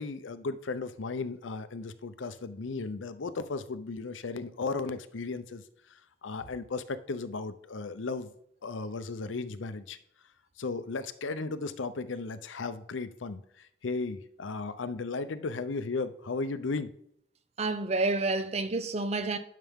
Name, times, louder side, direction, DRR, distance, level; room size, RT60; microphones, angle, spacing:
voice 1, 0.0-5.6 6.2-8.3 8.6-10.0 10.6-13.4 13.8-16.9, left 3 dB, 90° left, 0.6 m, -35 dB
voice 2, 17.6-19.4, right 3 dB, 35° right, 0.5 m, -29 dB
11.0 x 5.7 x 3.6 m
head